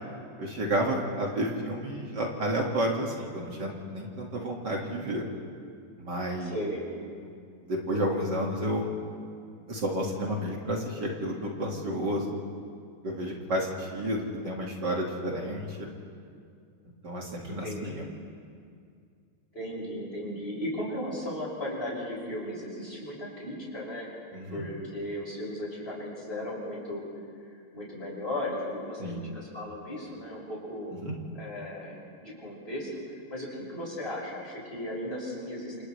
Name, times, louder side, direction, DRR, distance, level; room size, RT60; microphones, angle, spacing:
voice 1, 0.4-5.2 6.0-6.5 7.7-8.9 9.7-12.3 13.0-15.9 17.0-18.0 24.3-24.6 29.0-29.2 31.0-31.1, right 1 dB, 55° right, -1 dB, 2.7 m, -31 dB
voice 2, 6.4-6.8 17.6-18.1 19.5-24.1 24.5-27.1 27.7-31.1 31.3-32.9 33.3-35.8, left 1 dB, 25° left, -5 dB, 6.6 m, -36 dB
28.0 x 28.0 x 3.3 m, 2.2 s
omnidirectional pair, 2.4 m